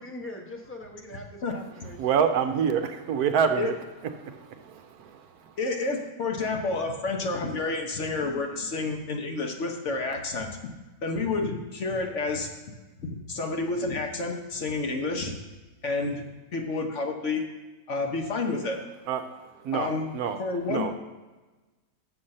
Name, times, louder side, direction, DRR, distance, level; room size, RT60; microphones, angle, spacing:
voice 1, 0.0-2.0, left 1 dB, 10° left, 0 dB, 0.8 m, -41 dB
voice 2, 2.0-3.7 4.0-5.6 19.1-21.0, right 7 dB, 70° right, 8 dB, 1.1 m, -28 dB
voice 3, 5.6-10.5 11.0-12.5 13.0-15.3 15.8-16.3 16.5-17.4 17.9-18.8 19.7-20.1 20.4-21.0, left 3 dB, 50° left, 3 dB, 1.1 m, -29 dB
7.0 x 5.6 x 6.4 m, 1.2 s
omnidirectional pair, 1.8 m